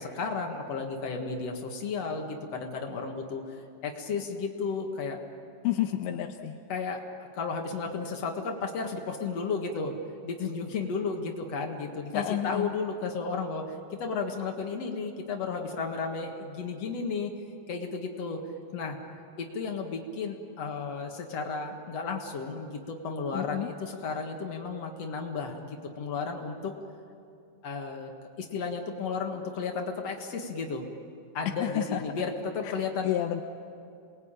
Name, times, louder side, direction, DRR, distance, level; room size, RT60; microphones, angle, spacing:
voice 1, 0.0-5.2 6.7-10.0 10.2-17.3 17.7-18.4 18.7-19.0 19.4-26.7 27.6-28.1 28.4-30.8 31.3-33.1, left 4 dB, 55° left, 2 dB, 1.9 m, -33 dB
voice 2, 5.6-6.6 12.1-12.7 23.3-23.7 31.6-32.0 33.0-33.4, left 13 dB, 80° left, 4 dB, 3.0 m, -30 dB
28.0 x 21.0 x 8.9 m, 2.5 s
omnidirectional pair, 5.2 m